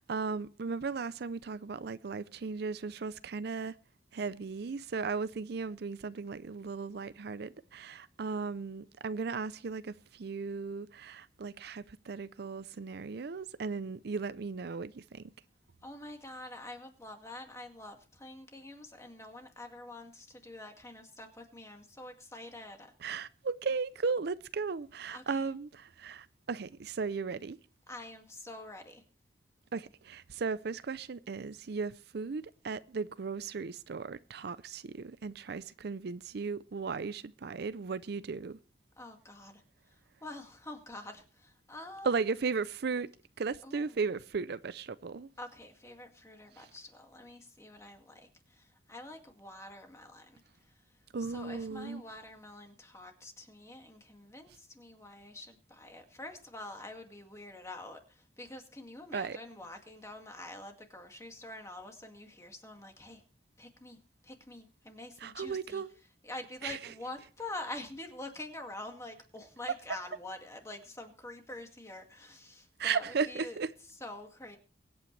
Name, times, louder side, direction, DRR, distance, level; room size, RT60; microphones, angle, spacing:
voice 1, 0.0-3.7 4.1-15.2 23.0-27.6 29.7-38.6 42.0-43.1 43.4-45.3 46.5-46.7 51.1-52.0 59.1-59.4 65.2-65.9 66.6-66.9 72.8-73.7, right 5 dB, 65° right, 0.5 m, -36 dB
voice 2, 15.8-22.9 25.1-25.5 27.9-29.0 39.0-42.2 43.6-44.1 45.4-50.8 51.2-63.2 63.6-74.6, left 2 dB, 15° left, 2.1 m, -46 dB
23.5 x 8.7 x 3.3 m
head